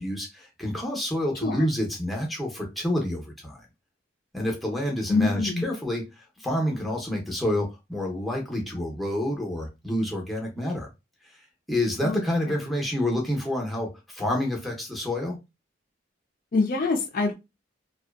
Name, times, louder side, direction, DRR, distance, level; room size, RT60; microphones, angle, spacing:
voice 1, 0.0-3.6 4.3-6.0 6.4-10.9 11.7-15.4, left 1 dB, ahead, 0.6 m, -28 dB
voice 2, 5.1-5.6 12.0-12.2 16.5-17.3, left 3 dB, 45° left, 0.4 m, -24 dB
2.6 x 2.2 x 2.3 m
head